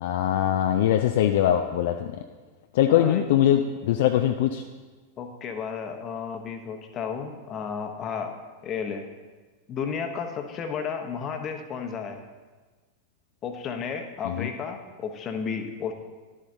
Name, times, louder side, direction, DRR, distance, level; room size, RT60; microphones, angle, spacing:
voice 1, 0.0-2.2 2.7-4.6 14.2-14.5, left 11 dB, 55° left, 6 dB, 0.4 m, -22 dB
voice 2, 2.9-3.3 5.2-8.3 8.6-9.1 9.7-12.2 13.4-15.9, left 6 dB, 30° left, 6 dB, 0.9 m, -33 dB
11.0 x 7.3 x 2.7 m, 1.3 s
figure-of-eight pair, 90°, 0 cm